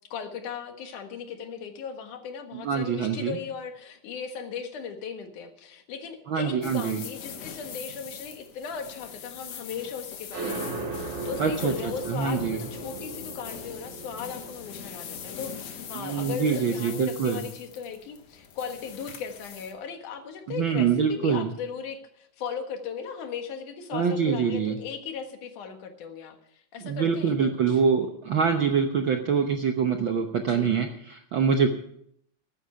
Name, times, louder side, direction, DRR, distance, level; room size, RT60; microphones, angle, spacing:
voice 1, 0.1-27.4 27.7-27.8 30.4-30.8, left 6 dB, 85° left, 6 dB, 3.1 m, -37 dB
voice 2, 2.5-3.4 6.3-7.0 11.4-12.6 15.9-17.4 20.5-21.5 23.9-24.8 26.8-31.7, right 6 dB, 65° right, 4 dB, 1.2 m, -25 dB
sound 1, 6.6-19.7, left 8 dB, 60° left, 2.4 m, -42 dB
sound 2, 10.3-17.6, right 3 dB, 90° right, 4.3 m, -38 dB
14.5 x 12.0 x 5.6 m, 0.69 s
omnidirectional pair, 3.5 m